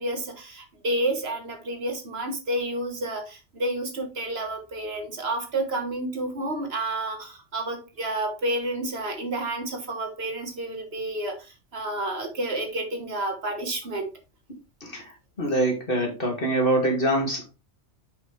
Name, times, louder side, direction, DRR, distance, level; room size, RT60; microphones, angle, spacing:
voice 1, 0.0-14.1, right 1 dB, 60° right, 4 dB, 1.6 m, -30 dB
voice 2, 15.4-17.5, right 1 dB, 50° left, 0 dB, 2.5 m, -24 dB
7.0 x 5.4 x 3.2 m, 0.29 s
omnidirectional pair, 1.2 m